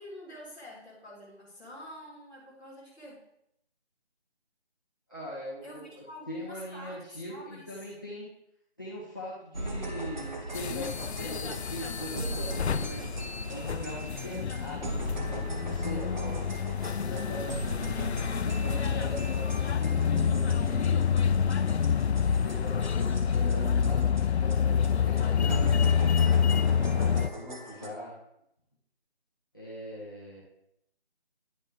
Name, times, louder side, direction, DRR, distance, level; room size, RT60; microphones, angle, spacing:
voice 1, 0.0-3.2 5.6-7.7, left 1 dB, 5° right, -17 dB, 1.3 m, -47 dB
voice 2, 5.1-8.3 8.8-13.1 13.5-16.4 16.9-18.0 18.4-21.0 22.1-25.8 26.1-28.1 29.5-30.4, equal, 20° left, -7 dB, 0.8 m, -41 dB
sound 1, 9.5-24.2 24.5-24.6 24.8-24.9 25.2-25.3 25.5-27.9, right 2 dB, 45° right, 0.8 m, -39 dB
sound 2, 10.5-27.3, left 7 dB, 90° left, 0.5 m, -27 dB
10.0 x 4.2 x 3.3 m, 0.76 s
figure-of-eight pair, 170°, 32 cm